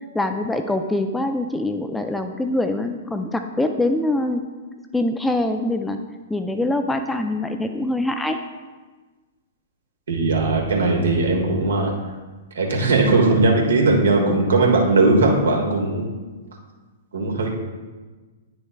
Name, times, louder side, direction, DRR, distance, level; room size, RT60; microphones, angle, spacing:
voice 1, 0.1-4.4 4.9-6.0 6.3-8.4, left 1 dB, 5° left, 6 dB, 0.4 m, -24 dB
voice 2, 10.1-11.9 12.5-16.1 17.1-17.5, right 3 dB, 70° right, 0 dB, 1.5 m, -18 dB
9.8 x 6.7 x 2.2 m, 1.3 s
figure-of-eight pair, 110°, 0 cm